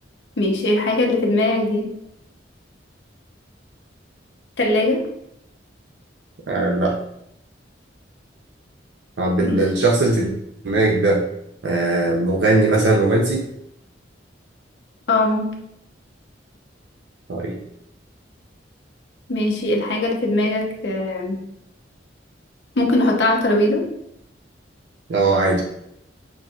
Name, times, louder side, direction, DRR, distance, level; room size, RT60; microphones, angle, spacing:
voice 1, 0.4-1.9 4.6-5.0 9.4-9.6 15.1-15.5 19.3-21.4 22.8-23.8, left 1 dB, 65° left, 1 dB, 0.8 m, -20 dB
voice 2, 6.5-7.0 9.2-10.3 10.6-11.2 11.6-13.4 17.3-17.6 25.1-25.6, right 2 dB, 70° right, -2 dB, 0.5 m, -19 dB
5.9 x 2.6 x 2.4 m, 0.77 s
head